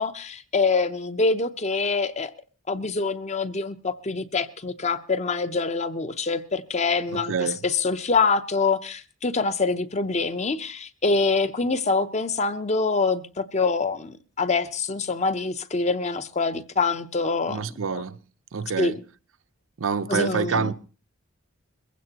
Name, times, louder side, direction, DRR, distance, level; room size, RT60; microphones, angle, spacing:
voice 1, 0.0-2.3 2.7-17.6 18.8-19.0 20.1-20.7, left 4 dB, 35° left, 0.7 m, -25 dB
voice 2, 7.1-7.6 17.5-18.2 18.5-19.0 19.8-20.7, right 5 dB, 75° right, 0.6 m, -27 dB
21.5 x 15.5 x 2.9 m
head